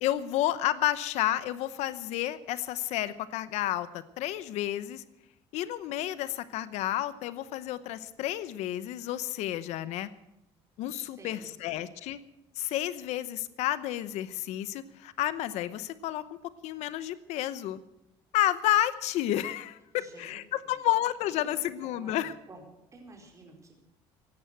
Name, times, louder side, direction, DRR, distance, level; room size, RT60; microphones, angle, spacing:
voice 1, 0.0-5.0 5.5-10.1 10.8-12.2 12.6-16.2 16.6-17.8 18.3-22.3, left 13 dB, 75° left, 15 dB, 0.8 m, -31 dB
voice 2, 11.0-11.7 20.0-20.7 21.3-22.6 22.9-23.8, right 2 dB, 25° right, 1 dB, 4.4 m, -52 dB
16.0 x 11.0 x 7.9 m, 0.90 s
cardioid pair, 110°, 12 cm